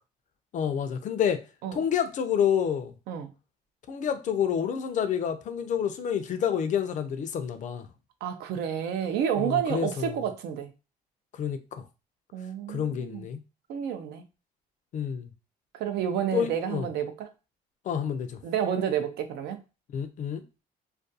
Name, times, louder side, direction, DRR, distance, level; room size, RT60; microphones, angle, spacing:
voice 1, 0.5-1.4 1.7-2.9 3.9-7.9 9.4-10.2 11.4-11.8 12.7-13.4 14.9-15.3 16.3-16.9 17.9-18.4 19.9-20.4, left 8 dB, 45° left, 0.4 m, -28 dB
voice 2, 8.2-10.7 12.3-13.2 13.7-14.2 15.7-17.3 18.4-19.6, right 9 dB, 75° right, 0.5 m, -30 dB
2.4 x 2.2 x 2.6 m
cardioid pair, 110°, 17 cm